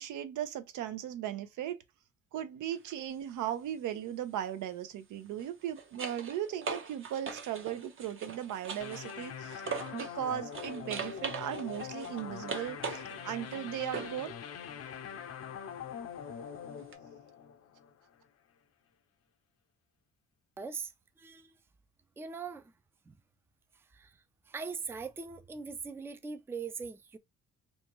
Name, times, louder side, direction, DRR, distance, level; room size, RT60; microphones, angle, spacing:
voice 1, 0.0-1.8 2.3-14.4, right 10 dB, 80° right, 0.6 m, -37 dB
sound 1, 2.7-3.0 5.3-10.2 10.5-14.3 16.9-17.0, right 5 dB, 45° right, 0.7 m, -41 dB
sound 2, 8.8-18.1, left 7 dB, 55° left, 0.6 m, -43 dB
voice 2, 20.6-20.9 21.2-21.5 22.2-22.7 23.1-23.2 23.7-24.2 24.5-27.2, right 5 dB, 10° right, 0.3 m, -41 dB
2.7 x 2.2 x 2.9 m
cardioid pair, 90°, 30 cm